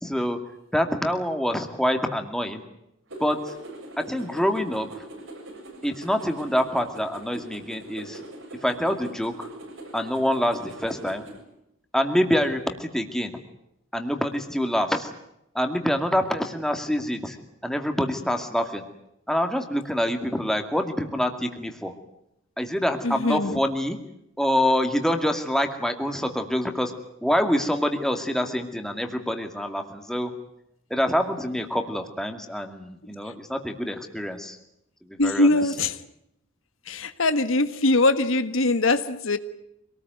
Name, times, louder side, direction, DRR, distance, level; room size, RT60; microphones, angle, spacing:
voice 1, 0.0-0.4 0.7-2.6 3.2-3.5 4.0-4.9 5.8-8.2 8.6-9.5 9.9-11.2 11.9-13.3 13.9-15.1 15.5-17.4 17.6-18.8 19.3-21.9 22.6-24.0 24.4-26.9 27.2-30.3 30.9-34.6 35.1-35.5, equal, ahead, 5 dB, 2.3 m, -26 dB
sound 1, 3.1-11.4, right 1 dB, 75° right, 7.0 m, -42 dB
voice 2, 23.0-23.6 35.2-36.0 36.9-39.4, left 2 dB, 90° left, 11 dB, 1.6 m, -22 dB
26.5 x 19.0 x 9.3 m, 0.82 s
head